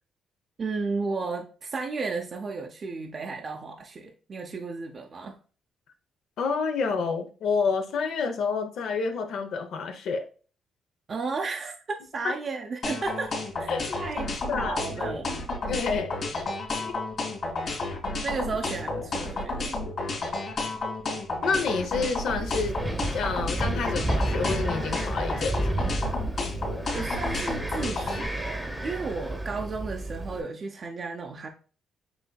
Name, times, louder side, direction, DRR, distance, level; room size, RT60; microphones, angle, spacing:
voice 1, 0.6-5.4 11.1-15.4 18.2-19.8 26.9-31.5, right 4 dB, 45° right, 0.5 m, -34 dB
voice 2, 6.4-10.2 12.2-12.3 13.7-14.0 14.5-15.1 15.7-16.2 16.8-17.0 20.6-20.7 21.4-22.8 23.1-25.9, left 5 dB, 75° left, 0.7 m, -29 dB
sound 1, 12.8-28.3, left 2 dB, 50° left, 2.1 m, -31 dB
Wind, 22.3-30.4, right 1 dB, 10° right, 0.9 m, -31 dB
7.9 x 2.7 x 2.3 m
cardioid pair, 90°, 0 cm